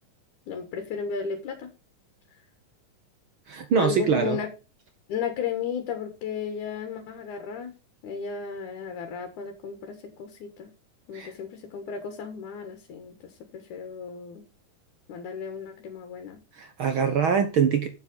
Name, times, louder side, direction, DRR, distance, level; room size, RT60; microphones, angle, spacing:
voice 1, 0.5-1.7 3.8-4.5 5.1-7.7 8.0-10.7 11.1-14.5 15.1-16.4, left 6 dB, 70° left, 6 dB, 2.7 m, -34 dB
voice 2, 3.5-4.4 11.1-11.3 16.6-17.9, right 6 dB, 70° right, 8 dB, 1.2 m, -23 dB
7.6 x 7.4 x 5.2 m, 0.31 s
omnidirectional pair, 3.8 m